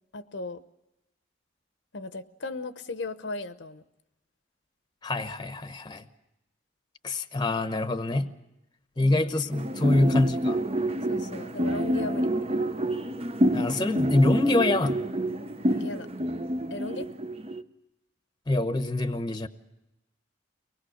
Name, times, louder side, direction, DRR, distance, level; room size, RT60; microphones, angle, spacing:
voice 1, 0.1-0.6 1.9-3.8 9.0-9.3 9.9-10.1 11.1-12.3 15.6-16.1 16.7-17.1, left 2 dB, 65° left, 12 dB, 0.9 m, -36 dB
voice 2, 5.0-6.0 7.0-8.3 9.0-10.6 13.5-15.0 18.5-19.5, left 2 dB, 20° left, 10 dB, 0.9 m, -25 dB
sound 1, 9.5-17.6, equal, 30° right, 0.7 m, -28 dB
23.5 x 20.0 x 6.4 m, 0.92 s
head